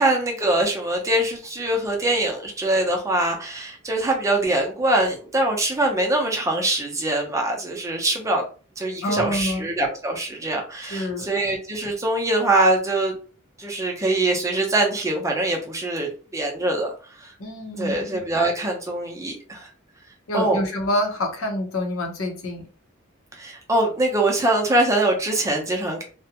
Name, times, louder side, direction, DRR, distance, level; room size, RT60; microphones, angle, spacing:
voice 1, 0.0-8.4 8.8-13.1 13.6-17.3 17.8-19.7 20.3-20.6 23.4-26.0, right 2 dB, 15° right, 1 dB, 0.5 m, -23 dB
voice 2, 9.0-9.7 10.8-11.3 17.4-18.1 20.3-22.7, left 1 dB, 85° left, 3 dB, 0.7 m, -27 dB
2.4 x 2.1 x 2.8 m, 0.37 s
head